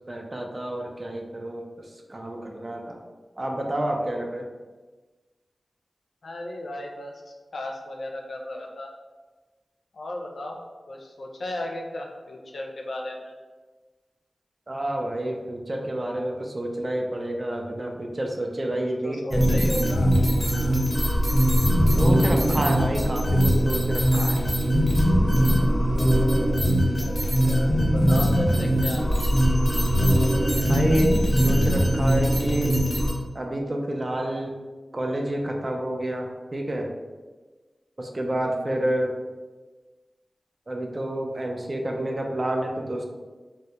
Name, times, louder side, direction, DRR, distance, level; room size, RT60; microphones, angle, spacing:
voice 1, 0.1-1.7 2.1-3.0 3.4-4.5 14.7-19.6 22.0-24.4 30.7-32.8 33.3-34.5 34.9-36.9 38.0-39.1 40.7-43.0, right 1 dB, 40° right, 1 dB, 0.4 m, -29 dB
voice 2, 6.2-8.9 9.9-10.6 10.9-13.3 19.0-20.1 20.4-20.8 23.6-23.7 26.9-29.0, left 1 dB, 80° left, 1 dB, 0.3 m, -35 dB
sound 1, 19.3-33.1, equal, 15° left, 0.8 m, -21 dB
2.1 x 2.0 x 2.8 m, 1.3 s
cardioid pair, 40°, 0 cm